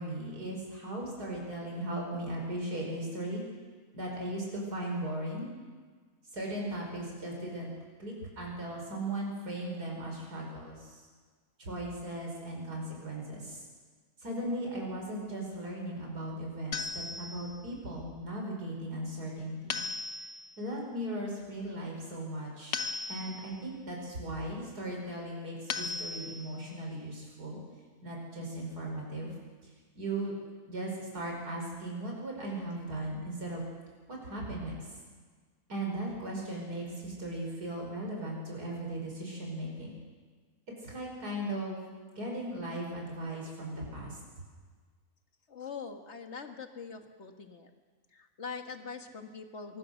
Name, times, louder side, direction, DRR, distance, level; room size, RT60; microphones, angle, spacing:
voice 1, 0.0-3.4 3.9-5.4 6.3-7.7 8.0-11.1 11.6-13.6 14.2-19.8 20.6-27.6 28.0-29.3 29.6-29.7 30.0-30.3 30.7-33.6 34.1-34.8 35.7-39.9 40.8-41.8 42.2-44.2, right 1 dB, 75° right, -1 dB, 5.8 m, -37 dB
sound 1, 16.7-17.6 19.7-20.6 22.7-23.6 25.7-26.6, left 4 dB, 90° left, 1.7 m, -37 dB
voice 2, 45.5-47.7 48.1-49.8, left 5 dB, 45° left, 5 dB, 2.0 m, -43 dB
25.0 x 23.0 x 6.6 m, 1.5 s
omnidirectional pair, 1.7 m